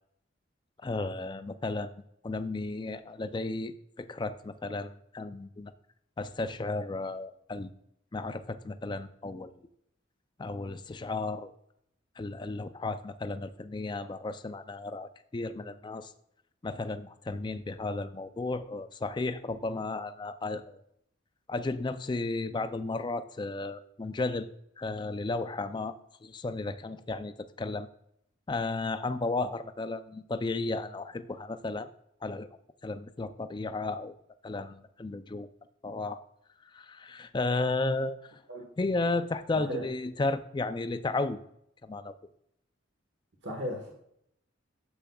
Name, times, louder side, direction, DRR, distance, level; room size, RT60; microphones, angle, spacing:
voice 1, 0.8-5.7 6.2-7.7 8.1-9.6 10.4-11.5 12.2-16.1 16.6-20.8 21.5-24.5 24.8-26.0 26.2-27.9 28.5-31.9 32.2-32.5 32.8-34.1 34.4-35.5 35.8-36.2 36.7-38.4 38.8-41.4 41.8-42.1, left 3 dB, 25° left, 11 dB, 0.4 m, -34 dB
voice 2, 43.4-43.9, equal, 60° right, 1 dB, 1.3 m, -35 dB
10.0 x 7.1 x 2.3 m, 0.74 s
head